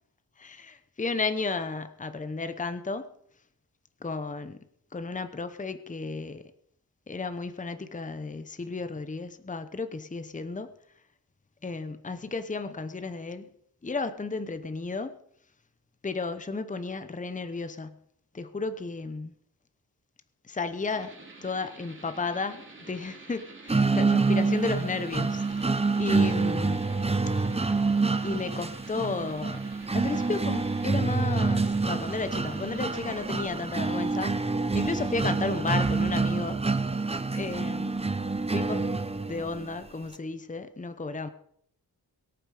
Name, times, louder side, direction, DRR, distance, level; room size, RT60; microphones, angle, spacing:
voice 1, 0.4-3.1 4.0-4.6 4.9-6.5 7.1-10.7 11.6-13.5 13.8-15.2 16.0-18.0 18.3-19.3 20.4-25.7 26.0-26.8 28.2-29.6 29.9-36.6 37.3-38.0 38.5-38.9 39.3-41.3, left 4 dB, 20° left, 11 dB, 0.8 m, -33 dB
sound 1, 20.9-33.0, right 3 dB, 30° right, 2.9 m, -49 dB
sound 2, 23.7-39.7, right 3 dB, 15° right, 0.7 m, -27 dB
23.5 x 8.8 x 4.9 m, 0.68 s
wide cardioid pair, 140°, 38 cm